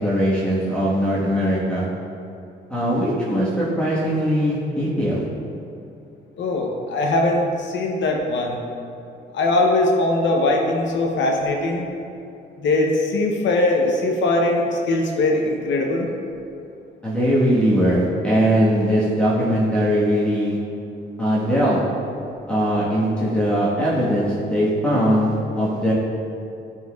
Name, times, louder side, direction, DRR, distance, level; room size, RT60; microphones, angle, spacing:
voice 1, 0.0-1.8 2.7-5.2 17.0-20.6 21.2-21.8 22.5-25.9, equal, 5° left, -8 dB, 1.4 m, -20 dB
voice 2, 6.4-8.6 9.3-11.9 12.6-16.1, left 2 dB, 70° left, 1 dB, 0.9 m, -21 dB
10.5 x 4.4 x 2.4 m, 2.6 s
cardioid pair, 90°, 20 cm